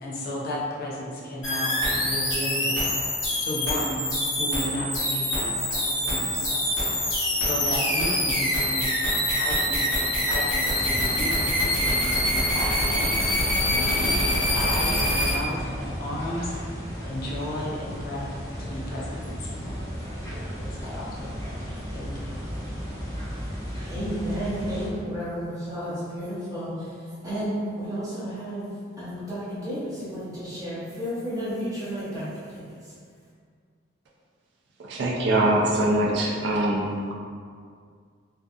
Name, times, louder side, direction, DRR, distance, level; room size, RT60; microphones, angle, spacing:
voice 1, 0.0-2.9 3.5-4.1 4.4-6.7 7.5-9.0 9.4-13.3 13.7-16.5 17.0-18.3 18.6-19.8 20.6-21.4 21.9-22.4, left 1 dB, 50° left, -5 dB, 0.4 m, -34 dB
sound 1, 1.4-15.3, left 1 dB, 75° left, 1.0 m, -25 dB
sound 2, 10.7-24.9, equal, 15° left, 0.8 m, -35 dB
voice 2, 23.9-28.7 29.0-32.9, equal, 20° right, -11 dB, 0.7 m, -32 dB
voice 3, 34.8-37.1, right 1 dB, 60° right, -3 dB, 0.3 m, -23 dB
2.6 x 2.3 x 2.3 m, 2.1 s
head